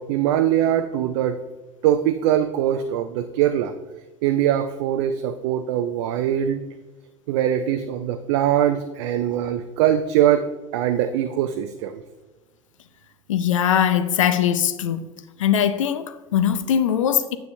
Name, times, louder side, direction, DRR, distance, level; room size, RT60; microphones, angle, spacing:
voice 1, 0.0-1.4 1.8-3.7 4.2-6.6 7.3-10.4 10.7-11.9, right 11 dB, 55° right, 0.5 m, -22 dB
voice 2, 13.3-15.0 15.4-17.4, left 9 dB, 70° left, 0.5 m, -21 dB
9.4 x 5.9 x 2.6 m
figure-of-eight pair, 70°, 17 cm